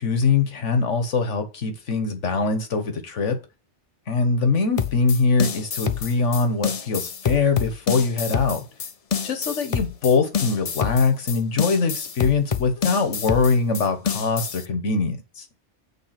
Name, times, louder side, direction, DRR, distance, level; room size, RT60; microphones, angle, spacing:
voice 1, 0.0-3.4 4.1-8.6 9.2-15.4, left 4 dB, 90° left, 1.6 m, -22 dB
sound 1, 4.8-14.7, left 7 dB, 40° left, 0.5 m, -27 dB
8.3 x 3.9 x 5.9 m
omnidirectional pair, 1.2 m